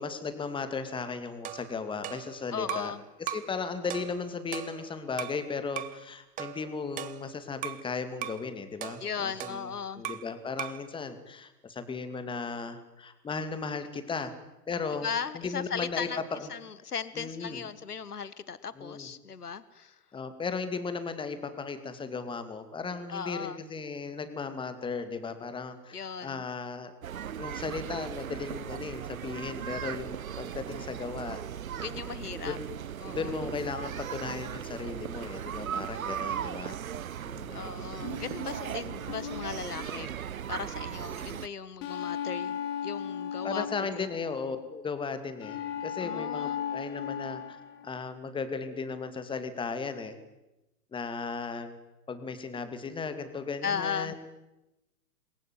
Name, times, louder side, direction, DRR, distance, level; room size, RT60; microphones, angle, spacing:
voice 1, 0.0-2.9 3.2-9.7 10.0-14.3 14.7-15.1 15.3-16.5 17.1-17.6 18.8-19.1 20.1-26.9 27.4-31.4 32.4-32.7 33.1-36.8 37.2-37.7 43.4-47.6 47.8-50.1 50.9-51.7 52.1-54.2, left 4 dB, 10° left, 10 dB, 2.4 m, -36 dB
sound 1, 1.4-3.0 3.3-3.6 3.9-5.4 5.8-6.0 6.4-7.9 8.2-8.5 8.8-10.3 10.6-10.9, right 13 dB, 15° right, 1.1 m, -39 dB
voice 2, 2.5-3.0 9.0-10.0 15.0-16.2 16.5-20.0 23.1-23.6 25.9-26.4 31.8-32.6 33.0-33.3 37.5-40.1 40.5-43.7 43.9-44.1 46.0-46.6 53.6-54.2, left 6 dB, 75° left, 17 dB, 1.4 m, -37 dB
sound 2, 27.0-41.5, right 9 dB, 60° right, 0.9 m, -37 dB
sound 3, 38.0-40.5 41.8-44.6 45.4-48.0, left 8 dB, 30° left, 2.5 m, -37 dB
27.5 x 22.0 x 9.4 m, 0.97 s
figure-of-eight pair, 110°, 46 cm